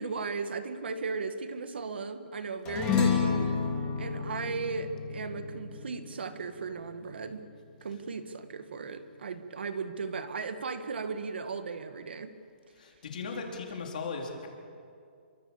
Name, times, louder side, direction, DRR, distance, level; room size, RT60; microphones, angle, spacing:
voice 1, 0.0-3.6 4.0-7.4 7.8-12.3, right 4 dB, 60° right, 9 dB, 1.9 m, -36 dB
sound 1, 2.6-7.3, left 6 dB, 15° left, 2.6 m, -31 dB
voice 2, 12.8-14.5, left 4 dB, 45° left, 1 dB, 4.0 m, -37 dB
28.5 x 24.5 x 7.3 m, 2.3 s
hypercardioid pair, 175°, 6 cm